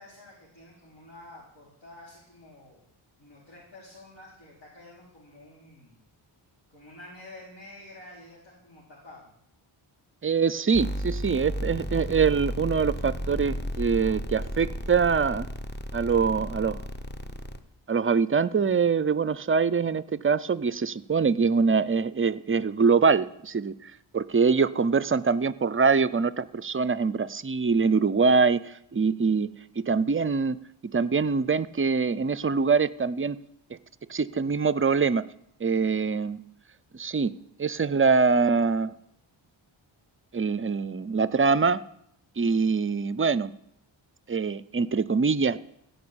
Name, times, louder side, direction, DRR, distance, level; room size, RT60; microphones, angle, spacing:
voice 1, 0.0-2.8 3.2-6.0 6.7-9.3, left 1 dB, 60° left, -5 dB, 4.4 m, -49 dB
voice 2, 10.2-15.5 15.9-16.8 17.9-29.5 29.8-30.6 30.9-33.4 34.1-35.2 35.6-36.4 36.9-37.3 37.6-38.9 40.3-41.8 42.4-43.5 44.3-45.6, right 5 dB, 25° right, 18 dB, 0.5 m, -24 dB
sound 1, 10.7-17.6, equal, 20° left, 1.1 m, -33 dB
16.0 x 5.5 x 8.7 m, 0.74 s
cardioid pair, 80°, 50 cm